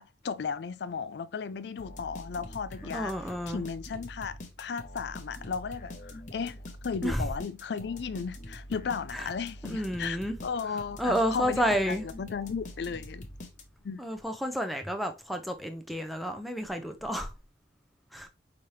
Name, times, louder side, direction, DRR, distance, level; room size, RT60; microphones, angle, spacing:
voice 1, 0.0-3.1 3.5-6.6 6.8-13.3 13.8-14.0, left 6 dB, 65° left, 0.4 m, -35 dB
sound 1, 1.8-14.0, left 1 dB, 40° left, 0.8 m, -45 dB
voice 2, 2.9-3.6 7.0-7.3 9.1-9.3 9.6-10.3 11.0-12.0 14.0-17.3 18.1-18.3, equal, ahead, 0.5 m, -30 dB
5.0 x 2.9 x 3.1 m
head